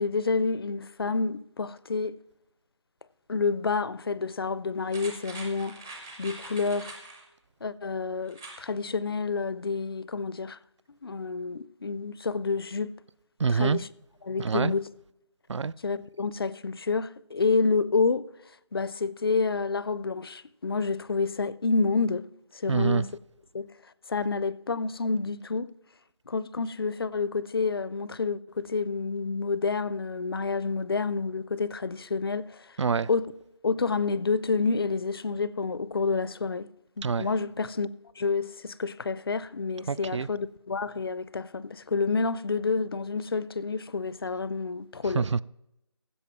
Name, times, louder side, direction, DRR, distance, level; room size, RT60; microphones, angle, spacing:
voice 1, 0.0-2.2 3.3-7.0 7.6-10.6 11.0-12.9 13.5-13.8 14.3-14.8 15.8-18.3 18.7-22.2 22.5-23.0 23.5-23.7 24.1-25.7 26.3-32.7 33.1-33.2 33.6-36.7 37.0-37.9 38.2-45.2, left 4 dB, 55° left, 0.5 m, -29 dB
sound 1, 4.9-7.2 8.3-8.6 9.0-9.1, right 2 dB, 5° right, 0.5 m, -44 dB
voice 2, 13.4-13.8 14.4-14.7 15.5-15.7 22.7-23.1 32.8-33.1 37.0-37.3 39.9-40.3 45.0-45.4, right 5 dB, 75° right, 0.4 m, -26 dB
15.5 x 5.4 x 5.9 m
figure-of-eight pair, 165°, 15 cm